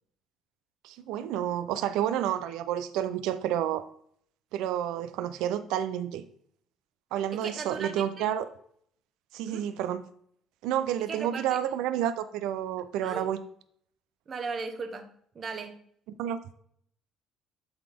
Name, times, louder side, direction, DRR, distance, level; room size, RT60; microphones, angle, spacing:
voice 1, 0.8-3.8 4.5-6.2 7.1-8.5 9.3-10.0 10.6-13.4 16.2-16.4, right 10 dB, 85° right, 0.6 m, -30 dB
voice 2, 7.3-8.3 9.4-9.7 11.1-11.6 13.0-13.3 14.3-15.8, right 4 dB, 35° right, 1.0 m, -37 dB
11.0 x 4.1 x 3.6 m
cardioid pair, 130°, 0 cm